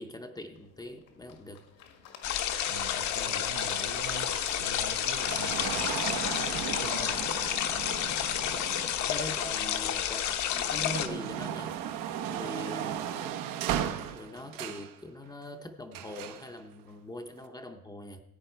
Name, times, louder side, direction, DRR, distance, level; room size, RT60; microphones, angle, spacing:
voice 1, 0.0-1.6 4.2-4.3 8.5-8.7 9.0-11.8 12.2-13.1 14.1-18.2, left 1 dB, 10° left, 5 dB, 0.6 m, -42 dB
Applause / Crowd, 0.5-9.6, left 7 dB, 75° left, 1.8 m, -51 dB
sound 1, 2.2-11.1, left 10 dB, 60° left, 1.0 m, -30 dB
voice 2, 2.7-7.2 9.6-9.9, right 7 dB, 55° right, 6 dB, 1.1 m, -44 dB
sound 2, 2.7-9.9 10.4-14.9 15.9-16.5 17.4-17.5, right 10 dB, 85° right, 1.0 m, -37 dB
15.0 x 9.1 x 4.4 m, 0.85 s
cardioid pair, 150°, 33 cm